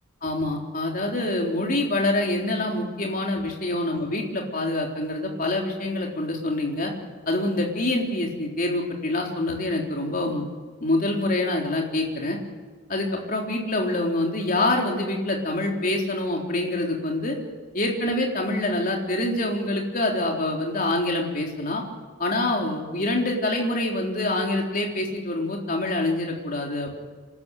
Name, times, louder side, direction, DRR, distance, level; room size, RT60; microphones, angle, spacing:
voice 1, 0.2-6.9 7.3-10.4 10.8-12.4 12.9-17.4 17.7-21.8 22.2-26.9, left 2 dB, 45° left, 0 dB, 3.9 m, -26 dB
27.0 x 13.0 x 9.1 m, 1.4 s
head